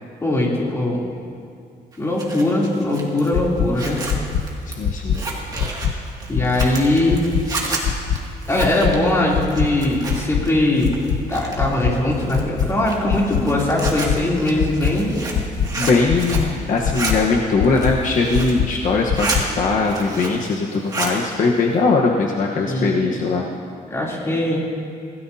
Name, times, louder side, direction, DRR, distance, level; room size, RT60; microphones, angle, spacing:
voice 1, 0.2-1.0 2.0-4.0 6.3-7.3 8.5-11.0 11.3-15.1 22.6-23.2 23.9-24.7, left 1 dB, 15° left, -4 dB, 3.1 m, -20 dB
Zipper (clothing), 1.9-10.5 10.8-11.7 12.2-16.5 16.8-17.1 17.6-18.6 18.9-19.4 19.8-20.5 20.7-21.2, right 3 dB, 20° right, 2.3 m, -30 dB
sound 1, 3.3-3.7 4.1-4.4 4.8-5.2 5.6-5.9 6.3-6.7 7.1-7.4 7.8-8.2 8.6-8.9 9.3-9.7 10.1-10.4 10.8-11.2 11.6-11.9 12.3-12.7 13.1-13.4 13.8-14.2 14.6-14.9 15.3-15.7 16.1-16.4 16.8-17.2 17.6-17.9 18.3-18.7 19.1-19.4, left 8 dB, 70° left, 0.9 m, -21 dB
voice 2, 4.8-5.2 15.7-19.3 19.5-23.5, left 3 dB, 50° left, -1 dB, 1.2 m, -20 dB
26.0 x 17.0 x 2.8 m, 2.3 s
cardioid pair, 160°, 17 cm